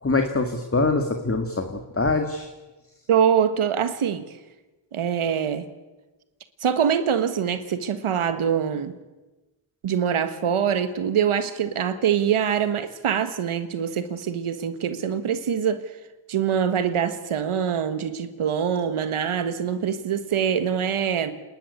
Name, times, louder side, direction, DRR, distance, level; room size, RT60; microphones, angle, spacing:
voice 1, 0.0-2.5, left 3 dB, 25° left, 5 dB, 2.1 m, -24 dB
voice 2, 3.1-4.2 4.9-5.6 6.6-8.9 9.8-15.8 16.3-21.3, right 8 dB, 80° right, 11 dB, 1.6 m, -24 dB
27.5 x 11.5 x 9.9 m, 1.1 s
cardioid pair, 60°, 49 cm